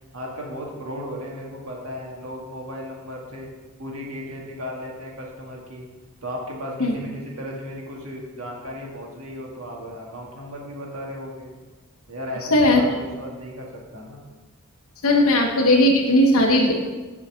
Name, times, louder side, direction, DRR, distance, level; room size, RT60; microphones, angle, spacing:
voice 1, 0.1-3.5 3.8-5.8 6.2-11.5 12.1-14.2, equal, 75° right, -1 dB, 1.7 m, -35 dB
voice 2, 12.5-12.8 15.0-16.7, left 1 dB, 75° left, 0 dB, 1.2 m, -17 dB
7.4 x 4.1 x 6.4 m, 1.3 s
head